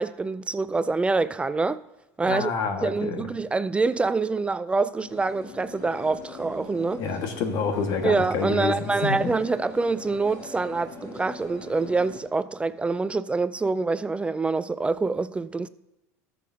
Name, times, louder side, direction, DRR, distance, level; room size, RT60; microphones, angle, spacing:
voice 1, 0.0-1.8 2.2-2.5 2.8-7.0 8.0-15.7, right 3 dB, 15° right, 0.3 m, -26 dB
voice 2, 2.2-3.2 7.0-9.3, left 5 dB, 60° left, 1.6 m, -28 dB
sound 1, 5.0-12.2, left 3 dB, 45° left, 2.8 m, -42 dB
17.5 x 6.8 x 2.8 m
supercardioid pair, 100°, 8 cm